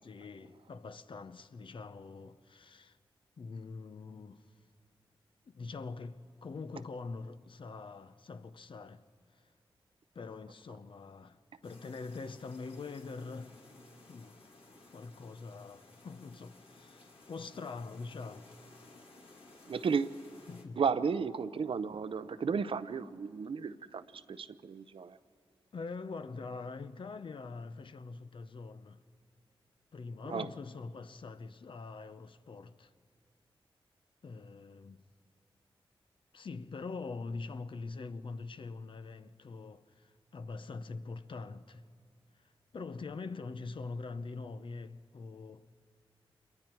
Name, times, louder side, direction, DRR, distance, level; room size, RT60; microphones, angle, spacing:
voice 1, 0.0-3.0 3.4-4.5 5.5-9.0 9.3-9.5 10.1-13.6 14.1-14.4 14.9-18.5 20.5-20.8 25.7-29.0 29.9-32.9 34.2-35.0 36.3-41.9 42.3-45.7, left 4 dB, 60° left, 0.8 m, -44 dB
sound 1, 11.6-20.6, left 2 dB, 75° left, 2.3 m, -57 dB
voice 2, 19.7-20.2 20.8-25.2 30.3-30.5, right 6 dB, 65° right, 0.7 m, -33 dB
27.0 x 22.5 x 4.6 m
cardioid pair, 50°, 10 cm